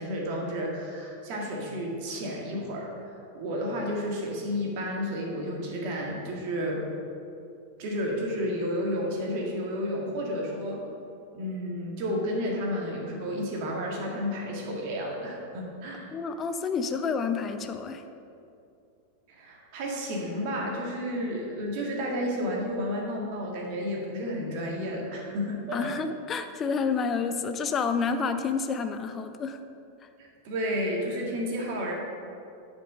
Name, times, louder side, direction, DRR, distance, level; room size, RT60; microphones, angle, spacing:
voice 1, 0.0-6.8 7.8-10.9 11.3-16.1 19.3-25.9 30.2-31.9, equal, 45° right, -1 dB, 1.8 m, -31 dB
voice 2, 16.1-18.0 25.7-29.6, left 5 dB, 25° left, 9 dB, 0.6 m, -29 dB
10.0 x 5.3 x 5.5 m, 2.6 s
figure-of-eight pair, 90°, 0 cm